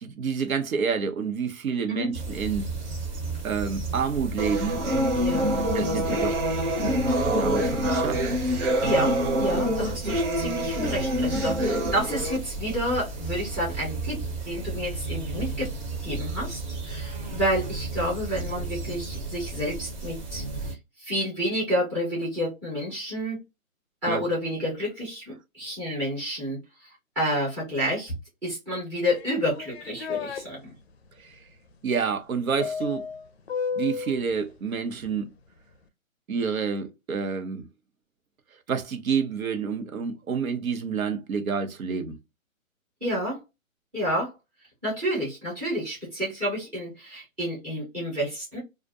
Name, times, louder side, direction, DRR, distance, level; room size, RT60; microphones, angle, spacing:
voice 1, 0.0-2.6 3.4-4.8 5.7-6.4 7.0-8.2 24.1-24.2 31.2-31.4 31.8-33.1 33.7-35.3 36.3-37.6 38.7-42.2, right 6 dB, 75° right, 0.9 m, -28 dB
sound 1, 2.1-20.7, right 3 dB, 35° right, 0.9 m, -34 dB
sound 2, 4.4-12.4, equal, 55° right, 1.1 m, -26 dB
voice 2, 5.1-6.0 8.8-14.2 14.4-15.7 16.0-23.4 24.0-28.1 28.4-30.7 43.0-43.4 43.9-44.3 44.8-48.6, equal, 5° right, 0.6 m, -30 dB
sound 3, 29.1-30.4 32.6-34.2, left 6 dB, 50° left, 0.5 m, -32 dB
2.4 x 2.2 x 2.5 m
hypercardioid pair, 155°, 42 cm